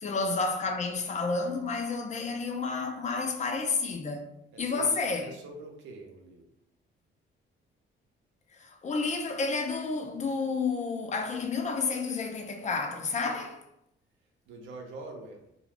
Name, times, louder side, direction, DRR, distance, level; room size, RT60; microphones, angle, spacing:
voice 1, 0.0-4.3 4.6-5.3 8.5-13.6, left 4 dB, 35° left, 0.4 m, -30 dB
voice 2, 4.5-6.4 14.5-15.5, right 2 dB, 85° right, 0.6 m, -45 dB
2.4 x 2.1 x 3.4 m
cardioid pair, 90°, 20 cm